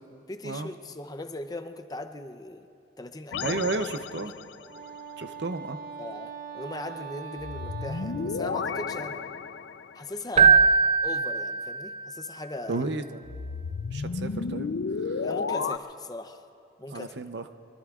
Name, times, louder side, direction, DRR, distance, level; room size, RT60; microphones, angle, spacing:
voice 1, 0.3-2.7 3.0-3.6 4.2-4.3 6.0-9.3 9.9-12.8 15.2-16.4 16.8-17.1, left 2 dB, 20° left, 8 dB, 0.6 m, -39 dB
sound 1, 3.3-4.7 7.4-10.1 13.2-15.8, left 5 dB, 85° left, 0.5 m, -32 dB
voice 2, 3.4-4.3 5.2-5.8 12.7-13.2 13.9-14.7 15.0-15.2 16.9-17.4, right 3 dB, 70° right, 9 dB, 0.7 m, -32 dB
Wind instrument woodwind instrument, 4.5-9.2, right 7 dB, 55° right, 1.1 m, -42 dB
Keyboard (musical), 10.4-12.2, right 5 dB, 35° right, 0.3 m, -21 dB
24.0 x 23.5 x 2.4 m, 2.5 s
head